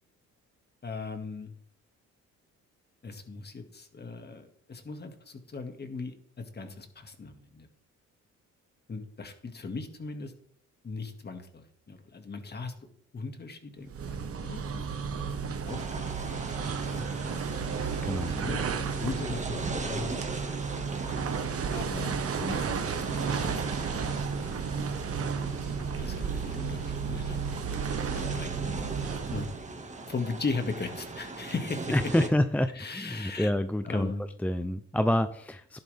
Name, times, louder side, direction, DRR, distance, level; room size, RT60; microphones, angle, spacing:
voice 1, 0.8-1.5 3.0-7.7 8.9-10.3 10.8-12.7 13.1-14.8 15.2-17.9 18.3-20.1 21.7-24.5 25.8-26.8 27.1-27.8 28.1-29.0 29.3-29.5 30.1-32.3 32.7-33.5 33.8-34.3, left 4 dB, 35° left, 6 dB, 2.1 m, -38 dB
sound 1, 13.9-29.7, right 6 dB, 50° right, 1.3 m, -33 dB
sound 2, 15.7-32.3, right 3 dB, 25° right, 1.8 m, -40 dB
voice 2, 31.9-34.1 34.4-35.8, left 1 dB, 5° left, 10 dB, 0.5 m, -27 dB
12.0 x 11.0 x 3.5 m, 0.63 s
cardioid pair, 90°, 30 cm